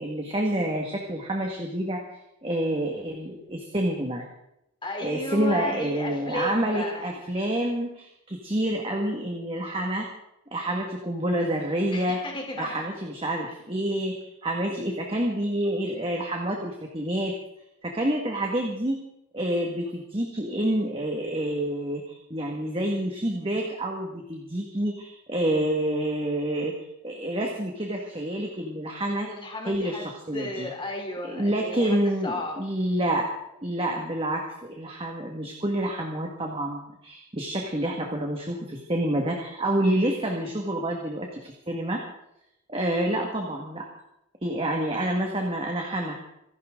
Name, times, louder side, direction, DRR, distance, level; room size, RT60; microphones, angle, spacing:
voice 1, 0.0-4.2 5.0-10.1 10.5-12.2 12.6-17.4 17.8-19.0 19.3-26.8 27.0-29.3 29.7-30.7 31.3-33.3 33.6-42.0 42.7-43.9 44.4-46.1, right 1 dB, 25° right, 1 dB, 1.9 m, -28 dB
voice 2, 4.8-7.1 11.9-12.7 29.1-32.6 43.0-43.2, left 2 dB, 20° left, 1 dB, 3.5 m, -34 dB
27.0 x 11.5 x 3.9 m, 0.82 s
head